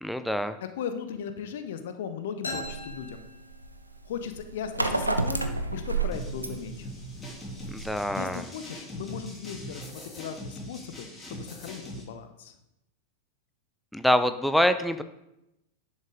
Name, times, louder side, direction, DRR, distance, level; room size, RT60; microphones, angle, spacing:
voice 1, 0.0-0.6 7.7-8.4 13.9-15.0, equal, ahead, 10 dB, 0.5 m, -25 dB
voice 2, 0.7-3.3 4.0-6.9 8.1-12.5, left 7 dB, 55° left, 9 dB, 0.7 m, -37 dB
sound 1, 2.4-4.1, left 1 dB, 75° left, 2.2 m, -39 dB
sound 2, 2.6-8.0, right 3 dB, 85° right, 0.7 m, -31 dB
sound 3, 6.1-12.0, equal, 15° left, 3.0 m, -41 dB
10.5 x 6.3 x 3.7 m, 0.89 s
figure-of-eight pair, 90°, 0 cm